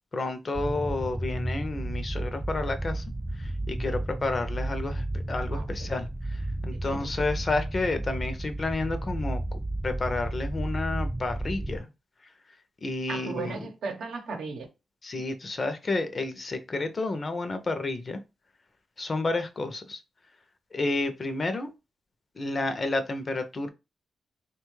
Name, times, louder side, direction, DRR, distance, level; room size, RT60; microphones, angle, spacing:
voice 1, 0.1-3.0 3.4-11.9 12.8-13.7 15.0-18.2 19.0-20.0 20.7-21.7 22.4-23.7, left 2 dB, 40° left, 0.5 m, -31 dB
sound 1, 0.6-11.8, right 1 dB, 15° right, 0.3 m, -32 dB
voice 2, 5.5-5.9 6.7-7.1 13.1-14.7, right 4 dB, 85° right, 0.7 m, -36 dB
2.9 x 2.2 x 3.1 m
cardioid pair, 80°, 0 cm